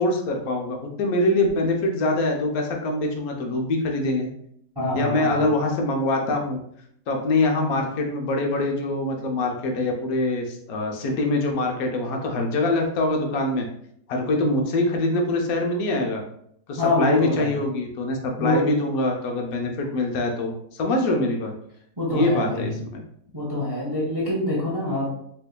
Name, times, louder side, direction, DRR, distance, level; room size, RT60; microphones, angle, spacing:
voice 1, 0.0-4.3 4.9-6.6 7.1-13.7 14.1-16.2 16.7-20.5 20.8-21.5 22.1-23.0, left 2 dB, 70° left, 2 dB, 1.1 m, -24 dB
voice 2, 4.8-5.4 16.8-17.5 18.4-18.7 22.0-22.7 23.3-25.1, left 1 dB, 30° right, -5 dB, 0.4 m, -25 dB
4.5 x 2.7 x 2.2 m, 0.69 s
omnidirectional pair, 1.7 m